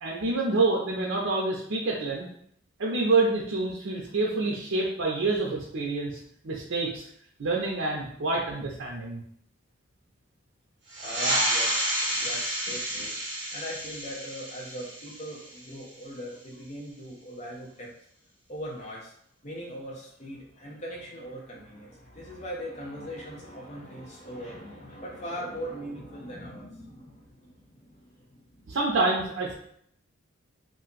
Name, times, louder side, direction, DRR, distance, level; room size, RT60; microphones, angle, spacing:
voice 1, 0.0-2.3 2.8-6.2 6.4-7.1 7.4-9.2 13.0-13.1 28.7-29.5, right 3 dB, 75° right, -3 dB, 0.6 m, -27 dB
sound 1, 10.9-16.0, right 1 dB, 60° right, 0.9 m, -30 dB
voice 2, 11.0-13.2 13.5-17.9 18.5-19.1 19.4-28.8, equal, 35° left, -2 dB, 0.7 m, -40 dB
2.5 x 2.2 x 3.8 m, 0.67 s
head